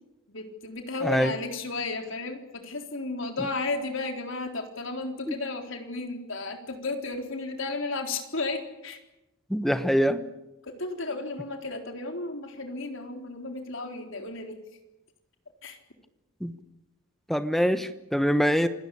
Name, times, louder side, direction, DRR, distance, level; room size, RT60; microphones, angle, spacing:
voice 1, 0.3-9.0 10.6-14.6 15.6-15.8, left 3 dB, 65° left, 4 dB, 4.0 m, -33 dB
voice 2, 1.0-1.3 5.3-5.4 9.5-10.2 16.4-16.5 17.3-18.7, equal, ahead, 10 dB, 1.1 m, -24 dB
27.5 x 18.5 x 8.6 m, 0.95 s
head